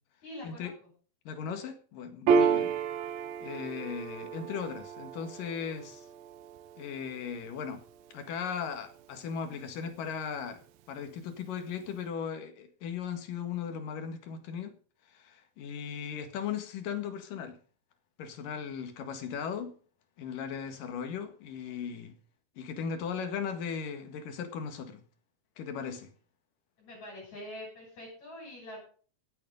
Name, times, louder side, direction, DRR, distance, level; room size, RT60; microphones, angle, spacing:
voice 1, 0.2-0.7 2.3-2.5 26.8-28.8, left 1 dB, 50° left, 8.3 m, -44 dB
voice 2, 1.2-2.7 3.4-6.1 6.8-7.8 8.1-10.6 10.9-14.7 15.1-17.6 18.2-19.7 20.2-22.1 22.6-25.0 25.6-26.1, left 7 dB, 75° left, 3.3 m, -37 dB
Piano, 2.3-9.2, right 6 dB, 90° right, 2.8 m, -32 dB
16.5 x 8.9 x 5.2 m
omnidirectional pair, 4.0 m